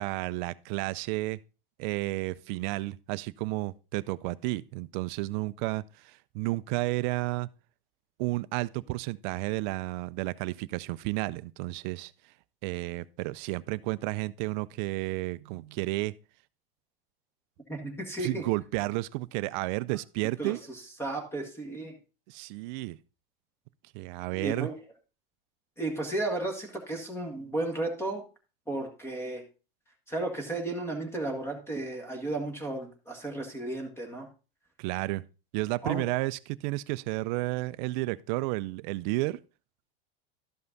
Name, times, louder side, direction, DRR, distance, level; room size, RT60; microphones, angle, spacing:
voice 1, 0.0-1.4 1.8-7.5 8.2-12.1 12.6-16.1 18.2-20.6 22.3-23.0 23.9-24.7 34.8-35.2 35.5-39.4, right 20 dB, 55° right, 0.5 m, -32 dB
voice 2, 17.7-18.4 20.4-21.9 24.3-24.8 25.8-28.2 28.7-29.4 30.1-34.3 35.8-36.0, right 2 dB, 10° left, 1.7 m, -34 dB
12.0 x 5.6 x 3.9 m
supercardioid pair, 135°, 29 cm